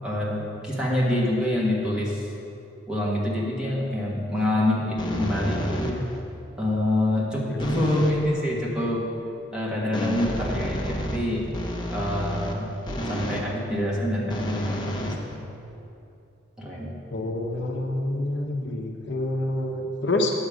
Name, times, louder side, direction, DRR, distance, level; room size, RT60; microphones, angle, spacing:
voice 1, 0.0-2.2 2.9-6.1 6.6-9.1 9.5-11.5 11.9-12.7 13.1-15.3 16.6-17.0, left 1 dB, 5° right, -5 dB, 1.5 m, -26 dB
sound 1, 5.0-6.2 7.6-8.3 9.9-13.5 14.3-15.8, equal, 20° left, 0.8 m, -31 dB
voice 2, 17.1-20.3, left 2 dB, 60° left, 2 dB, 0.8 m, -27 dB
9.5 x 7.3 x 5.0 m, 2.7 s
head